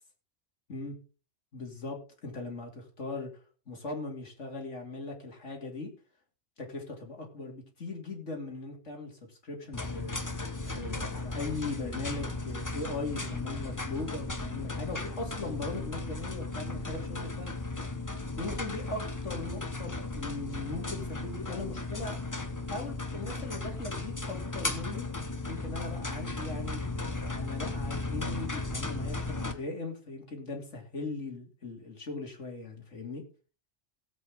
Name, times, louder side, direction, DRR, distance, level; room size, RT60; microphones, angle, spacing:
voice 1, 1.5-3.3 3.7-5.9 6.6-17.6 18.4-22.2 22.7-25.1 25.5-26.8 27.3-33.2, left 3 dB, 80° left, 2 dB, 2.9 m, -39 dB
sound 1, 9.7-29.5, left 2 dB, 15° left, 1.0 m, -36 dB
17.0 x 7.8 x 3.6 m, 0.35 s
omnidirectional pair, 1.2 m